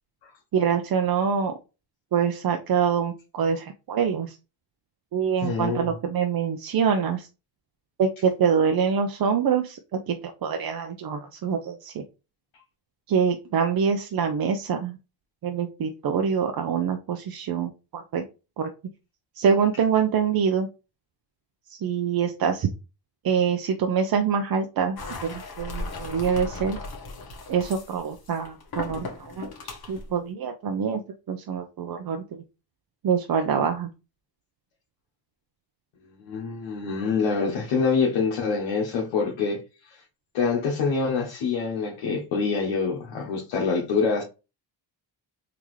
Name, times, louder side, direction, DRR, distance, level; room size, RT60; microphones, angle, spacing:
voice 1, 0.5-1.5 2.1-4.4 5.1-7.3 8.0-12.0 13.1-15.0 15.4-18.2 18.6-18.7 19.3-20.7 21.7-22.7 23.2-26.8 27.5-31.0 31.3-32.4 33.0-33.9, right 6 dB, 50° right, 0.6 m, -25 dB
voice 2, 5.4-5.9 36.2-40.0 40.3-44.2, left 5 dB, 85° left, 1.0 m, -26 dB
sound 1, 25.0-30.1, left 2 dB, 50° left, 1.2 m, -37 dB
3.7 x 2.8 x 3.1 m
cardioid pair, 70°, 46 cm